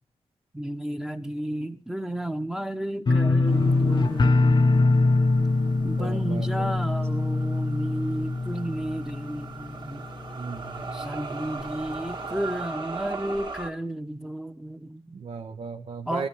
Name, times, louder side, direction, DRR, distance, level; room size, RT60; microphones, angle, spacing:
voice 1, 0.5-4.7 5.8-10.1 10.9-15.2 16.1-16.3, right 1 dB, 5° right, 1.0 m, -32 dB
sound 1, 3.1-9.9 10.2-10.8 11.1-11.2, left 3 dB, 40° left, 0.8 m, -23 dB
sound 2, 3.5-13.7, right 4 dB, 45° right, 2.2 m, -40 dB
voice 2, 6.0-6.7 10.3-11.0 15.1-16.3, right 5 dB, 60° right, 1.3 m, -36 dB
17.0 x 14.0 x 3.4 m
wide cardioid pair, 145°, 11 cm